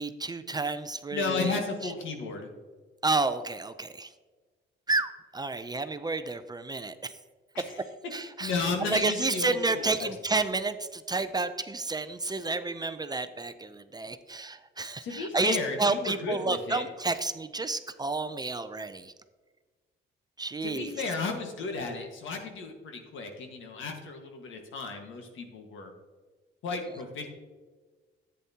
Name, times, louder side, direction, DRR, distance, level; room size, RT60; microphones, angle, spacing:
voice 1, 0.0-1.9 3.0-4.1 4.9-7.1 8.1-19.1 20.4-21.0, right 3 dB, 20° right, 11 dB, 0.5 m, -31 dB
voice 2, 1.1-2.5 7.5-7.6 8.4-10.1 15.0-16.8 20.6-25.9 26.6-27.3, left 4 dB, 75° left, 4 dB, 1.6 m, -34 dB
10.5 x 8.5 x 2.8 m, 1.4 s
cardioid pair, 90°, 20 cm